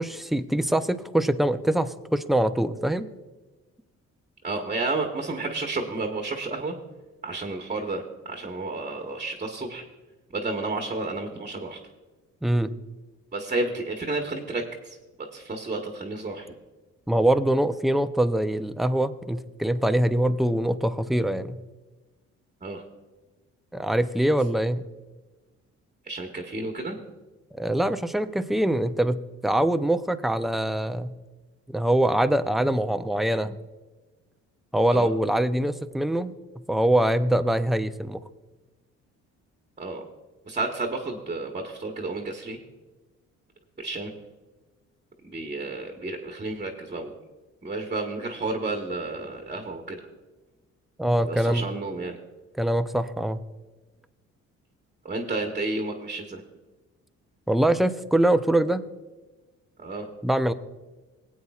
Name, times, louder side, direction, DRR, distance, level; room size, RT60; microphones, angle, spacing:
voice 1, 0.0-3.1 12.4-12.7 17.1-21.6 23.7-24.8 27.6-31.1 31.7-33.6 34.7-36.3 36.7-38.2 51.0-51.6 52.6-53.4 57.5-58.8 60.2-60.5, right 1 dB, ahead, 10 dB, 0.5 m, -23 dB
voice 2, 4.4-6.7 7.2-9.8 10.3-11.8 13.3-15.0 15.3-16.5 22.6-22.8 26.0-27.0 34.9-35.1 39.8-40.0 40.4-42.6 43.8-44.1 45.2-47.1 47.6-50.1 51.2-52.2 55.0-56.4 59.8-60.1, right 2 dB, 25° right, 3 dB, 1.2 m, -31 dB
20.0 x 8.4 x 2.4 m, 1.2 s
cardioid pair, 90°, 30 cm